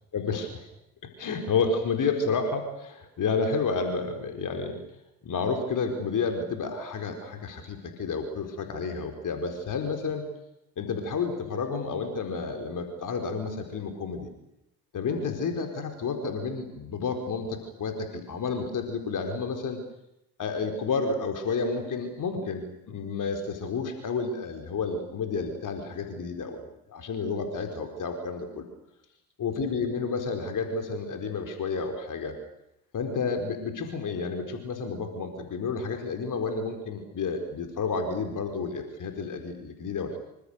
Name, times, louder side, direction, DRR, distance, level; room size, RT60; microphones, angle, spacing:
voice 1, 0.1-0.5 1.0-4.8 5.2-10.3 10.8-14.3 14.9-19.8 20.4-28.7 29.4-32.4 32.9-40.2, left 4 dB, 40° left, 5 dB, 4.6 m, -30 dB
27.0 x 24.5 x 6.7 m, 0.84 s
figure-of-eight pair, 55°, 46 cm